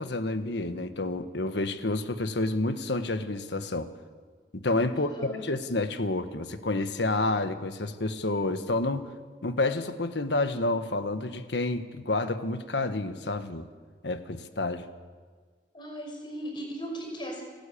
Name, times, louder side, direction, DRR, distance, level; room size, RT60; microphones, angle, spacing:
voice 1, 0.0-3.9 4.5-5.1 5.4-9.1 9.4-13.7 14.0-14.8, left 2 dB, 75° left, 9 dB, 1.4 m, -29 dB
voice 2, 4.9-5.5 15.7-17.4, equal, 30° left, 2 dB, 5.7 m, -37 dB
30.0 x 12.0 x 8.6 m, 1.5 s
head